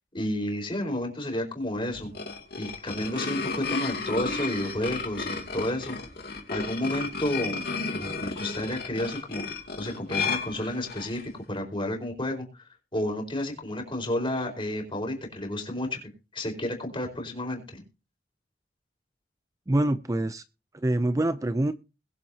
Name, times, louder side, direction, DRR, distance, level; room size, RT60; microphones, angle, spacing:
voice 1, 0.1-2.1 2.6-6.0 6.5-9.4 9.8-16.0 16.3-17.8, left 1 dB, 30° left, 4 dB, 4.7 m, -31 dB
sound 1, 1.9-11.3, left 4 dB, 60° left, 2.7 m, -33 dB
voice 2, 19.7-20.4 20.7-21.7, right 1 dB, 20° right, 12 dB, 0.5 m, -25 dB
21.5 x 7.6 x 2.8 m, 0.30 s
head